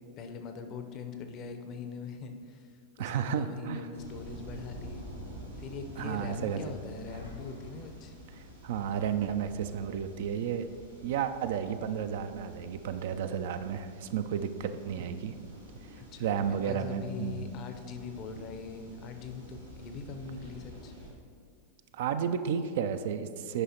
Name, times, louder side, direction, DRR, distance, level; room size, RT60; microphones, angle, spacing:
voice 1, 0.2-2.7 3.0-5.0 5.6-8.1 16.1-20.9, left 5 dB, 35° left, 6 dB, 0.6 m, -42 dB
voice 2, 3.0-3.9 6.0-6.7 8.4-10.7 11.0-15.5 15.9-17.5 21.9-23.6, right 8 dB, 55° right, 10 dB, 0.3 m, -32 dB
sound 1, 3.9-21.1, right 1 dB, 90° right, 1.5 m, -49 dB
sound 2, 6.8-8.5, left 3 dB, 70° left, 1.0 m, -49 dB
9.6 x 5.4 x 2.9 m, 2.2 s
figure-of-eight pair, 90°, 0 cm